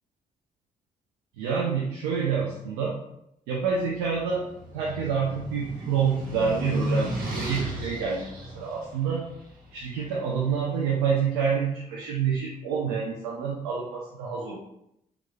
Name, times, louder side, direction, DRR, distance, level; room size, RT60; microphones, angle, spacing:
voice 1, 1.4-3.0 3.5-4.5 4.7-9.3 9.7-14.6, right 6 dB, 90° right, -4 dB, 0.4 m, -27 dB
sound 1, 3.9-10.2, equal, 55° right, 0.7 m, -33 dB
3.2 x 2.4 x 2.3 m, 0.79 s
hypercardioid pair, 45°, 17 cm